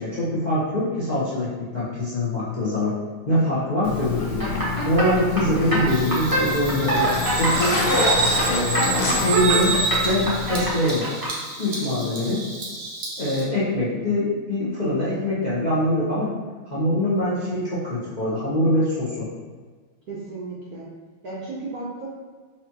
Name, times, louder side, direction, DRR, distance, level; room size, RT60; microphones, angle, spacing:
voice 1, 0.0-2.9 3.3-4.5 4.8-7.8 8.4-9.8 10.0-11.1 11.6-12.4 13.2-16.3 16.7-19.3, left 1 dB, 60° left, -9 dB, 0.4 m, -24 dB
Zipper (clothing), 3.8-10.7, left 3 dB, 75° left, 1.6 m, -27 dB
sound 1, 4.2-11.3, right 1 dB, 35° right, 0.3 m, -25 dB
Bird vocalization bird call bird song, 5.9-13.4, right 3 dB, 80° right, 0.5 m, -28 dB
voice 2, 20.1-20.9 21.2-22.1, right 3 dB, 65° right, -5 dB, 0.9 m, -34 dB
4.9 x 2.9 x 2.9 m, 1.5 s
omnidirectional pair, 2.3 m